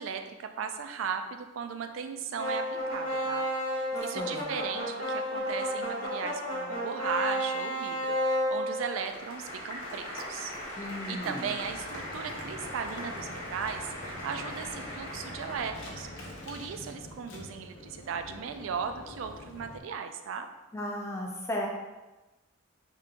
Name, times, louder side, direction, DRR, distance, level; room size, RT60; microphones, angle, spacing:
voice 1, 0.0-2.6 2.9-20.5, right 6 dB, 75° right, 7 dB, 0.3 m, -37 dB
sound 1, 2.3-16.5, equal, 85° left, 1.1 m, -34 dB
voice 2, 4.1-4.5 10.8-11.5 20.7-21.7, left 1 dB, 15° left, -1 dB, 0.4 m, -35 dB
sound 2, 11.6-19.8, left 1 dB, 65° left, 0.6 m, -46 dB
3.5 x 2.8 x 2.4 m, 1.1 s
head